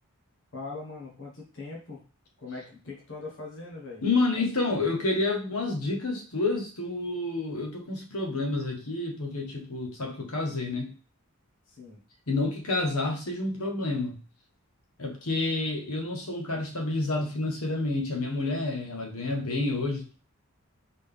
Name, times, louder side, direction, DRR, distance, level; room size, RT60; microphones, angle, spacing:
voice 1, 0.5-2.0 2.4-4.0 11.7-12.0, left 3 dB, 60° left, -2 dB, 1.5 m, -41 dB
voice 2, 4.0-10.9 12.3-14.2 15.0-20.1, left 2 dB, 75° left, 2 dB, 1.2 m, -29 dB
3.9 x 3.8 x 3.4 m, 0.36 s
head